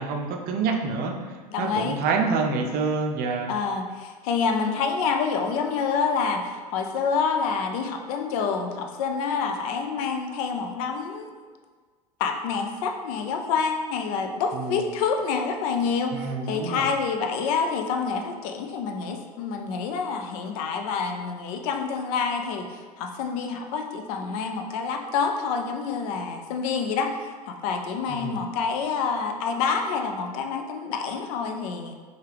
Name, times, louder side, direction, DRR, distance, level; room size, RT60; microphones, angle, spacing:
voice 1, 0.0-3.6 14.5-14.9 16.1-16.9 28.1-28.4, right 4 dB, 50° right, 3 dB, 0.5 m, -27 dB
voice 2, 1.5-2.0 3.5-11.3 12.2-31.9, left 5 dB, 65° left, 5 dB, 0.5 m, -27 dB
4.6 x 2.4 x 3.3 m, 1.5 s
hypercardioid pair, 85°, 20 cm